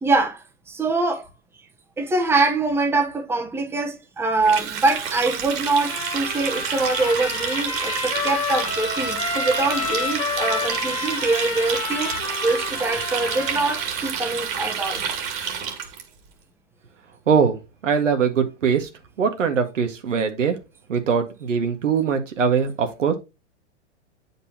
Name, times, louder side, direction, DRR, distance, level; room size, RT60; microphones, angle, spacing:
voice 1, 0.0-0.4 0.7-1.2 2.0-12.2 12.4-15.0, right 3 dB, 5° right, 1.0 m, -24 dB
Water tap faucet, 4.4-16.0, right 7 dB, 35° right, 1.9 m, -29 dB
Trumpet, 5.7-13.9, left 5 dB, 20° left, 1.6 m, -30 dB
voice 2, 17.3-18.9 19.2-20.6 20.9-23.2, right 6 dB, 90° right, 1.9 m, -22 dB
8.4 x 5.2 x 2.9 m
hypercardioid pair, 130°, 36 cm